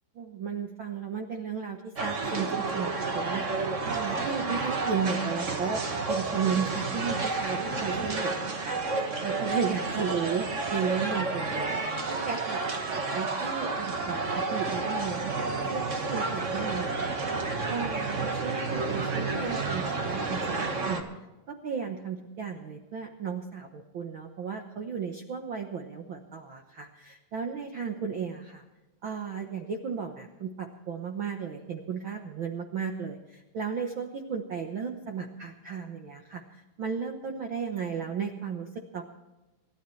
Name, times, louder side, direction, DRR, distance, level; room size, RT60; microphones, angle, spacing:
voice 1, 0.1-5.8 6.1-15.3 15.6-17.3 17.7-21.1 21.5-28.6 29.0-38.7 38.9-39.0, right 6 dB, 70° right, 4 dB, 1.1 m, -34 dB
sound 1, 2.0-21.0, right 3 dB, 45° right, 0.9 m, -30 dB
28.5 x 13.0 x 3.2 m, 1.1 s
omnidirectional pair, 3.9 m